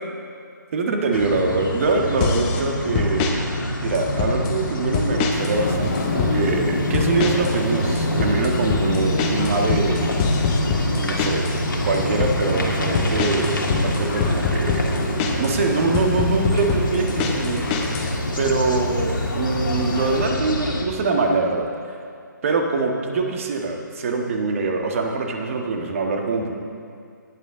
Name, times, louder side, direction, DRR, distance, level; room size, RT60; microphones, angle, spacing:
voice 1, 0.7-3.3 3.8-10.1 10.7-11.5 11.8-17.7 18.4-21.7 22.4-26.5, right 3 dB, 40° right, 2 dB, 1.5 m, -24 dB
sound 1, 1.1-20.8, equal, 90° left, 2.0 m, -28 dB
sound 2, 2.2-2.6 2.9-3.3 3.9-4.6 4.9-5.6 5.8-6.4 6.9-7.6 7.8-11.6 11.9-12.4 12.9-15.5 15.9-18.1, left 5 dB, 20° left, 1.0 m, -24 dB
sound 3, 5.3-20.3, left 2 dB, 50° left, 2.1 m, -28 dB
19.0 x 9.0 x 3.8 m, 2.3 s
figure-of-eight pair, 150°, 11 cm